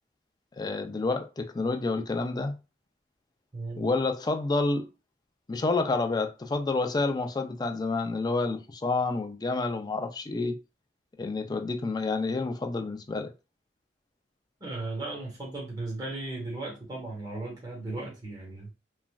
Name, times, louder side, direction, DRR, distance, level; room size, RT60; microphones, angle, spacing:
voice 1, 0.6-2.5 3.8-4.9 5.5-10.6 11.2-13.3, left 3 dB, 25° left, 0.3 m, -29 dB
voice 2, 3.5-3.9 14.6-18.7, right 2 dB, 25° right, 1.2 m, -36 dB
3.2 x 2.4 x 2.2 m
head